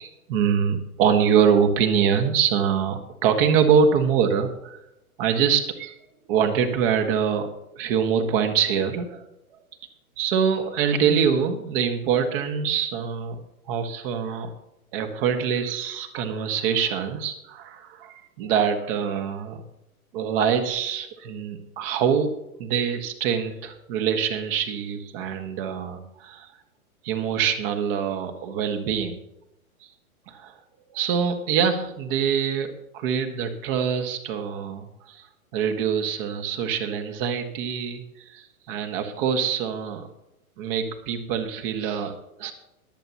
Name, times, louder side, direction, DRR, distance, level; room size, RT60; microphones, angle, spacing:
voice 1, 0.0-4.8 5.2-5.9 6.3-9.2 10.2-13.4 13.7-14.5 14.9-19.6 20.1-26.5 27.0-29.2 30.3-30.6 30.9-35.3 35.5-40.1 40.6-42.5, right 7 dB, 40° right, 6 dB, 1.7 m, -24 dB
22.5 x 8.1 x 2.9 m, 0.87 s
figure-of-eight pair, 115°, 44 cm